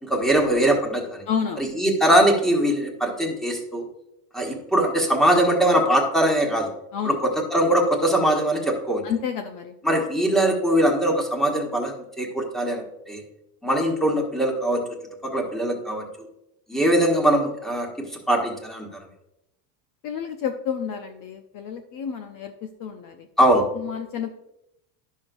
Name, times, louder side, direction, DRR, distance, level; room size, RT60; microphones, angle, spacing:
voice 1, 0.0-1.2 1.6-3.8 4.3-6.7 7.0-9.0 9.8-13.2 13.6-14.8 15.2-16.0 16.7-18.9 23.4-23.7, right 1 dB, ahead, 1 dB, 1.4 m, -21 dB
voice 2, 1.3-1.7 6.9-7.2 9.0-10.0 20.0-23.3 23.8-24.3, left 7 dB, 40° left, 6 dB, 0.7 m, -30 dB
10.5 x 6.5 x 2.6 m, 0.87 s
supercardioid pair, 125°, 49 cm